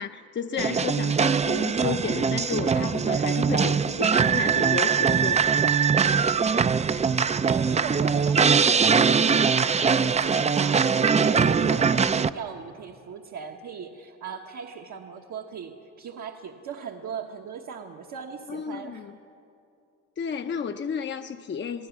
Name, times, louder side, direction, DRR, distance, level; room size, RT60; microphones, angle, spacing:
voice 1, 0.0-5.4 18.5-19.2 20.2-21.9, left 6 dB, 40° left, 7 dB, 0.7 m, -32 dB
sound 1, 0.6-12.3, right 6 dB, 25° right, 0.4 m, -22 dB
voice 2, 7.4-19.1, right 7 dB, 70° right, 0 dB, 1.3 m, -38 dB
24.5 x 15.0 x 7.2 m, 2.5 s
cardioid pair, 90°, 30 cm